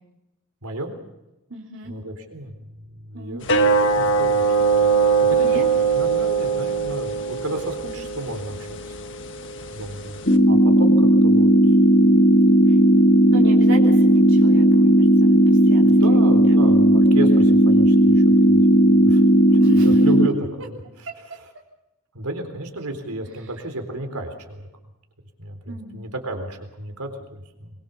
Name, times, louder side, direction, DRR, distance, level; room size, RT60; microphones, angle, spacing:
voice 1, 0.6-0.9 1.8-3.7 4.0-8.9 9.7-10.2 10.5-12.1 15.8-19.2 19.8-20.8 22.1-24.7 25.4-27.7, right 1 dB, 85° right, 5 dB, 3.8 m, -33 dB
voice 2, 1.5-1.9 3.1-3.4 5.3-5.7 12.7-12.8 13.3-14.9 15.2-16.6 19.5-20.0 25.7-26.1, right 1 dB, 60° right, -1 dB, 3.4 m, -34 dB
sound 1, 3.4-10.4, right 5 dB, 55° left, 1.6 m, -22 dB
sound 2, 10.3-20.3, right 1 dB, 40° left, 2.0 m, -15 dB
23.0 x 23.0 x 7.0 m, 0.95 s
head